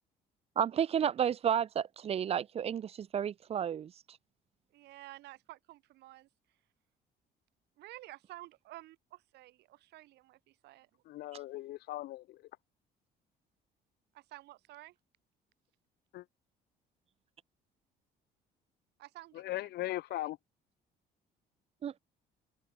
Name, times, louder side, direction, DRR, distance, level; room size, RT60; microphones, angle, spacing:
voice 1, 0.6-3.9 21.8-22.0, right 9 dB, 35° right, 0.5 m, -31 dB
voice 2, 4.7-6.3 7.8-10.9 14.1-15.0 19.0-20.3, right 17 dB, 80° right, 3.8 m, -52 dB
voice 3, 11.1-12.4 16.1-16.2 19.3-20.4, left 16 dB, 75° left, 2.3 m, -38 dB
cardioid pair, 110°, 17 cm